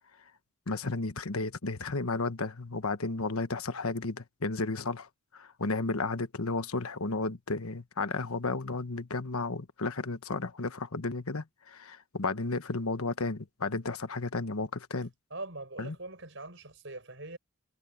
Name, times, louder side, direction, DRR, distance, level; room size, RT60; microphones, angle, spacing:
voice 1, 0.7-5.1 5.3-15.1 15.8-16.0, left 3 dB, 90° left, 1.3 m, -33 dB
voice 2, 15.3-17.4, right 2 dB, 60° right, 6.9 m, -42 dB
head